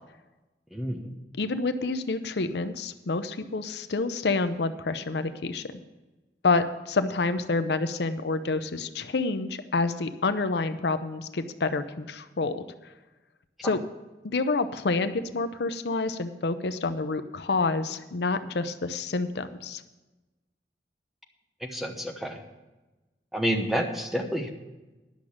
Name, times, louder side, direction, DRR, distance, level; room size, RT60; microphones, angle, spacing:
voice 1, 0.7-1.1 21.6-22.4 23.3-24.5, equal, ahead, 3 dB, 0.9 m, -29 dB
voice 2, 1.4-5.6 6.4-12.6 13.6-13.8 14.2-19.8, left 3 dB, 75° left, 10 dB, 0.6 m, -28 dB
10.5 x 6.3 x 8.6 m, 1.1 s
head